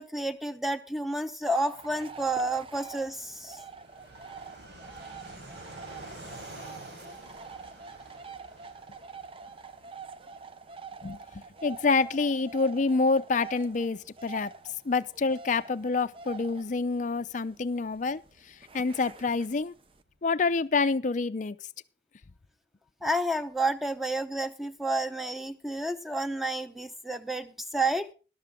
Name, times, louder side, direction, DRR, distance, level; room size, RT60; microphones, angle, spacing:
voice 1, 0.0-3.6 23.0-28.1, right 1 dB, ahead, 0.8 m, -30 dB
sound 1, 1.5-20.0, right 5 dB, 30° right, 0.5 m, -46 dB
Fixed-wing aircraft airplane, 1.7-20.1, right 1 dB, 90° right, 4.4 m, -52 dB
voice 2, 11.0-14.5 14.8-18.2 18.7-19.7 20.2-21.6, left 4 dB, 45° left, 0.5 m, -27 dB
13.5 x 12.0 x 3.6 m
head